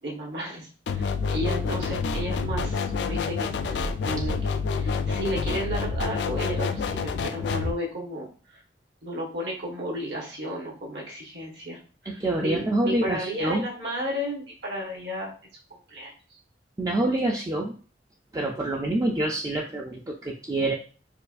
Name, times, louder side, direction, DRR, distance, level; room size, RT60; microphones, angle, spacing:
voice 1, 0.0-8.6 9.0-11.8 12.0-15.3 15.9-16.4, equal, 70° right, -3 dB, 1.3 m, -33 dB
sound 1, 0.9-7.7, left 5 dB, 70° left, 0.3 m, -28 dB
voice 2, 12.1-13.6 16.8-17.7 18.3-20.7, right 1 dB, 20° right, -1 dB, 0.4 m, -26 dB
4.4 x 2.3 x 2.5 m, 0.39 s
head